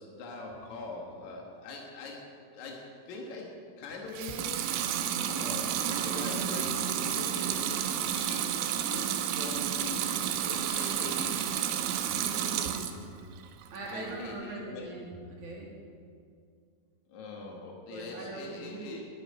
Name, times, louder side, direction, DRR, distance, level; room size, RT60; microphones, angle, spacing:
voice 1, 0.0-2.3 2.5-4.7 5.3-10.1 10.4-11.5 13.9-14.9 17.1-19.0, left 3 dB, 65° left, -1 dB, 1.8 m, -42 dB
Water tap faucet / Sink (filling or washing) / Liquid, 4.1-13.0 13.4-14.2, right 9 dB, 90° right, 3.3 m, -31 dB
voice 2, 5.8-6.6 12.1-12.9 13.7-15.8 17.9-19.0, right 3 dB, 50° right, -3 dB, 2.9 m, -41 dB
11.5 x 9.0 x 9.9 m, 2.3 s
omnidirectional pair, 5.4 m